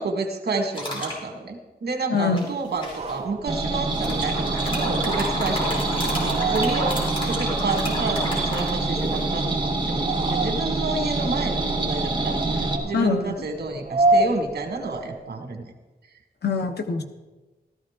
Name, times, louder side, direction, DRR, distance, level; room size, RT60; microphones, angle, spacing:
voice 1, 0.0-7.0 7.3-15.6, right 3 dB, 90° right, 4 dB, 1.8 m, -30 dB
sound 1, 0.7-1.2 2.4-3.1 3.9-9.2, left 1 dB, 30° left, 3.4 m, -31 dB
voice 2, 2.1-2.5 12.9-13.4 16.4-17.0, left 5 dB, 80° left, 5 dB, 1.1 m, -24 dB
sound 2, 2.7-15.3, right 2 dB, 45° right, 0.7 m, -30 dB
sound 3, 3.5-12.8, right 2 dB, 30° right, 1.4 m, -26 dB
15.0 x 13.0 x 3.7 m, 1.2 s
wide cardioid pair, 160°, 17 cm